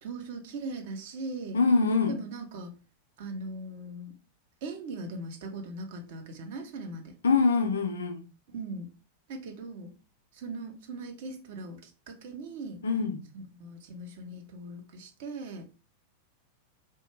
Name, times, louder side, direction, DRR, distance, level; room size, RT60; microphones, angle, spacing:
voice 1, 0.0-1.6 2.1-2.7 3.2-4.1 4.6-7.2 8.5-8.9 9.3-9.9 10.3-12.8 13.3-15.7, right 2 dB, 55° right, 0.6 m, -39 dB
voice 2, 1.5-2.2 7.2-8.2 12.8-13.2, left 4 dB, 70° left, 0.4 m, -24 dB
2.2 x 2.1 x 3.0 m
figure-of-eight pair, 90°, 0 cm